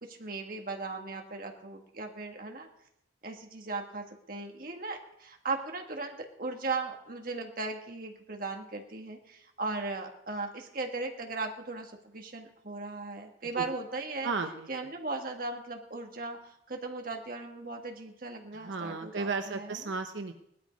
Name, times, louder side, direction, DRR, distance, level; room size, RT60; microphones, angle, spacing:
voice 1, 0.0-2.7 3.2-14.3 14.7-16.4 16.7-19.8, right 3 dB, 50° right, 3 dB, 1.8 m, -37 dB
voice 2, 14.2-14.9 18.5-20.3, right 4 dB, 85° right, 6 dB, 0.9 m, -34 dB
17.5 x 12.0 x 5.2 m, 0.77 s
head